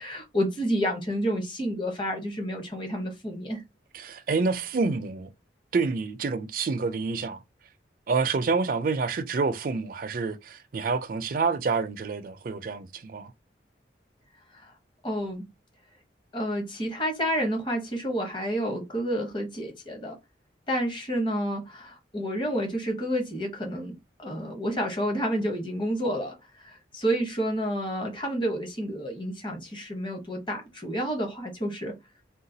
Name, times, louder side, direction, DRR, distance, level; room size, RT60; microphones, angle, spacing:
voice 1, 0.0-3.6 14.5-14.7 15.0-15.5 16.3-20.2 20.7-26.3 26.6-31.9, equal, 25° left, 0.9 m, -30 dB
voice 2, 3.9-5.3 5.7-7.4 8.1-13.3, right 4 dB, 50° right, 0.4 m, -28 dB
3.8 x 2.2 x 2.7 m
head